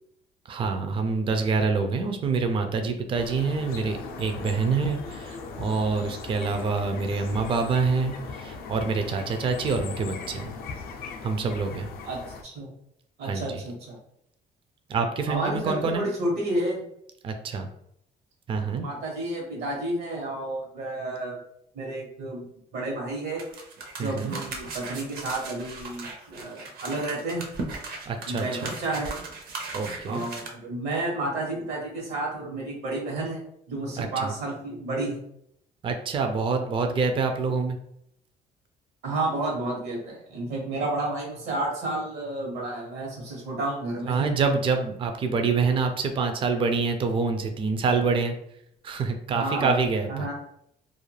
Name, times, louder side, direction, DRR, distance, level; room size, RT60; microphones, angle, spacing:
voice 1, 0.5-10.5 11.2-11.9 13.2-13.6 14.9-16.1 17.2-17.7 18.5-18.8 24.0-24.4 28.1-28.6 29.7-30.2 34.0-34.3 35.8-37.8 44.1-48.3 48.8-50.3, right 4 dB, 30° right, 6 dB, 0.4 m, -26 dB
sound 1, 3.1-12.4, left 4 dB, 60° left, 0.4 m, -39 dB
voice 2, 12.0-12.7 13.2-14.0 15.3-16.8 18.8-21.4 21.7-22.4 22.7-23.4 24.0-27.4 28.3-29.2 30.0-33.4 33.7-35.2 39.0-44.3 49.3-49.7 50.1-50.3, right 2 dB, 80° right, -2 dB, 1.1 m, -31 dB
sound 2, 23.4-30.5, right 3 dB, 65° right, 0.6 m, -38 dB
2.4 x 2.2 x 3.1 m, 0.74 s
cardioid pair, 110°, 17 cm